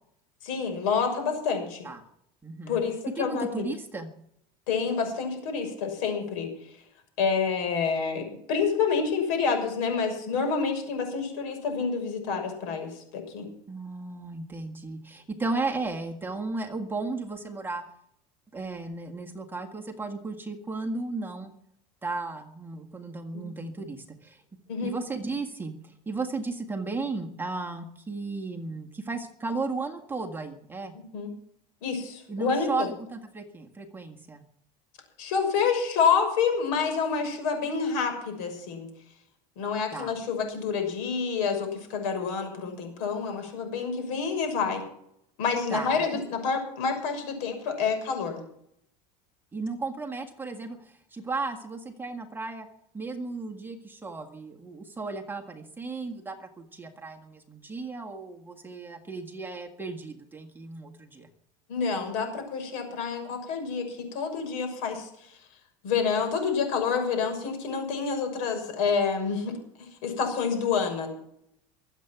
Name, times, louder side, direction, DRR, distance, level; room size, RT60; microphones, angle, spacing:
voice 1, 0.4-1.8 2.7-3.7 4.7-6.5 7.2-13.5 23.3-23.4 24.7-24.9 30.9-31.3 31.8-32.9 35.2-38.9 39.6-44.8 45.4-48.4 61.7-65.1 65.8-71.1, left 5 dB, 80° left, 4 dB, 6.3 m, -28 dB
voice 2, 2.4-2.8 3.2-4.1 13.7-17.8 18.5-21.5 22.0-24.4 24.8-30.9 32.3-34.4 39.9-40.2 45.7-46.2 49.5-52.7 52.9-61.3, right 3 dB, 10° right, 2 dB, 1.7 m, -35 dB
22.5 x 8.2 x 6.0 m, 0.72 s
supercardioid pair, 130°, 17 cm